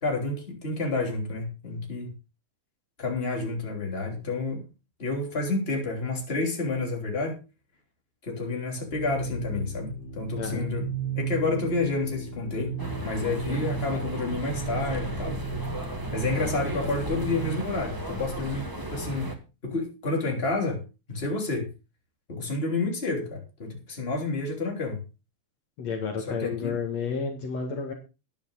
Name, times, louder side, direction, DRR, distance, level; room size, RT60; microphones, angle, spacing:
voice 1, 0.0-2.1 3.0-4.6 5.0-7.4 8.2-10.9 11.2-12.7 13.0-15.4 16.1-19.4 19.6-20.8 21.1-21.7 22.3-25.0 26.3-26.7, left 3 dB, 20° left, 1 dB, 3.4 m, -29 dB
sound 1, 8.9-17.5, right 4 dB, 85° left, 5.3 m, -35 dB
voice 2, 10.4-10.7 13.4-13.6 25.8-27.9, left 5 dB, 60° left, 4 dB, 2.9 m, -31 dB
sound 2, 12.8-19.4, right 1 dB, 15° right, 0.7 m, -36 dB
13.5 x 10.0 x 4.0 m, 0.30 s
omnidirectional pair, 3.4 m